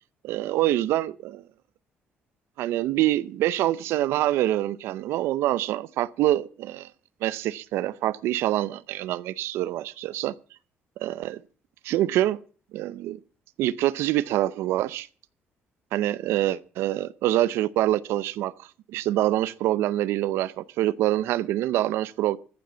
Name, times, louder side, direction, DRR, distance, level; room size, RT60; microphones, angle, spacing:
voice 1, 0.2-1.4 2.6-6.9 7.2-10.3 11.0-11.4 11.8-12.4 12.7-13.2 13.6-15.1 15.9-22.4, right 14 dB, 85° right, 0.6 m, -25 dB
14.5 x 7.7 x 8.0 m
cardioid pair, 150°, 4 cm